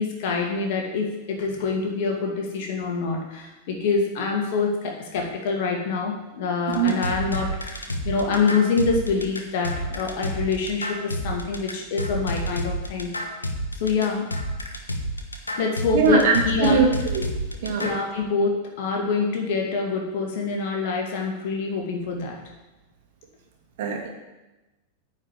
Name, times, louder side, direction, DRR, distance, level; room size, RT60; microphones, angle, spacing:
voice 1, 0.0-13.1 13.8-14.3 15.6-16.8 17.7-22.4, left 4 dB, 50° left, 1 dB, 2.3 m, -26 dB
sound 1, 6.7-18.0, equal, 80° left, 1.2 m, -30 dB
voice 2, 15.9-17.3 17.6-17.9 23.8-24.1, right 5 dB, 55° right, 1 dB, 2.2 m, -21 dB
9.8 x 5.3 x 8.3 m, 1.1 s
figure-of-eight pair, 90°, 0 cm